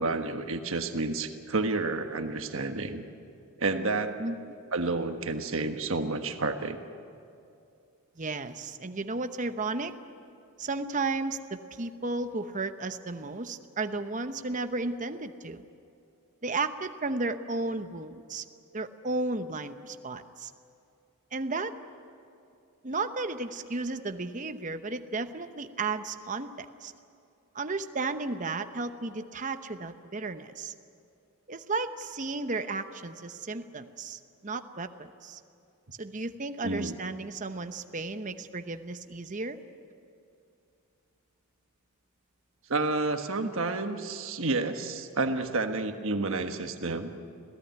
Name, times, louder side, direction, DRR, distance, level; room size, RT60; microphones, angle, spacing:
voice 1, 0.0-3.0 3.6-4.1 4.7-6.8 36.6-37.0 42.7-47.1, right 3 dB, 60° right, 6 dB, 1.5 m, -30 dB
voice 2, 8.2-9.9 10.6-15.6 16.4-18.4 18.7-20.5 21.3-21.7 22.8-26.9 27.5-30.7 31.5-35.4 36.0-39.6, right 3 dB, 35° right, 8 dB, 0.9 m, -34 dB
26.5 x 17.0 x 9.4 m, 2.5 s
head